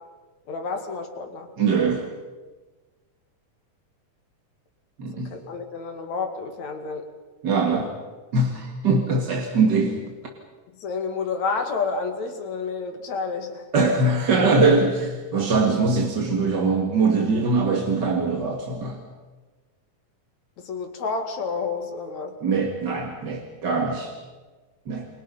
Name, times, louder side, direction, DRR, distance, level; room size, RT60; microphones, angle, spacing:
voice 1, 0.5-1.5 5.3-7.0 7.7-7.9 10.8-13.7 20.6-22.4, left 4 dB, 70° left, 5 dB, 3.5 m, -30 dB
voice 2, 1.6-2.1 5.0-5.3 7.4-7.9 8.3-10.0 13.7-19.0 22.4-24.1 24.9-25.1, right 3 dB, 40° right, 1 dB, 2.3 m, -22 dB
29.5 x 22.5 x 5.7 m, 1.3 s
omnidirectional pair, 3.4 m